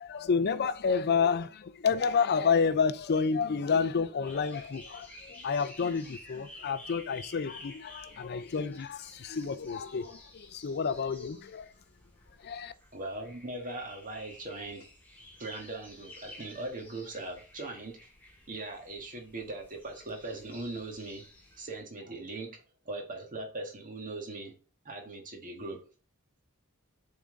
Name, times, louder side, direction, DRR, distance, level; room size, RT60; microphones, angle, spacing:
voice 1, 0.0-11.7 12.4-12.7, left 5 dB, 45° left, 0.5 m, -29 dB
sound 1, 4.2-21.8, left 1 dB, 10° left, 2.0 m, -53 dB
voice 2, 12.9-14.9 15.4-18.0 18.5-21.2 21.6-22.6 22.8-24.5 24.8-25.8, right 2 dB, 35° right, 1.6 m, -40 dB
6.9 x 3.8 x 3.9 m
head